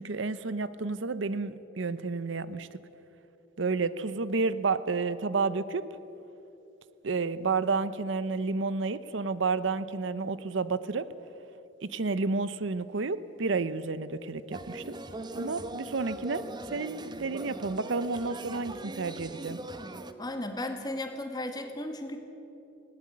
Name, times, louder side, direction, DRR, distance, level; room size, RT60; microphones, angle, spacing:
voice 1, 0.0-2.8 3.6-5.9 7.0-11.1 11.8-15.0 15.3-16.4 16.7-19.6, right 4 dB, 70° right, 15 dB, 0.7 m, -31 dB
sound 1, 14.5-20.1, right 2 dB, 20° right, 0.9 m, -40 dB
voice 2, 20.2-22.3, left 1 dB, 20° left, 5 dB, 1.9 m, -35 dB
20.0 x 18.0 x 8.7 m, 3.0 s
head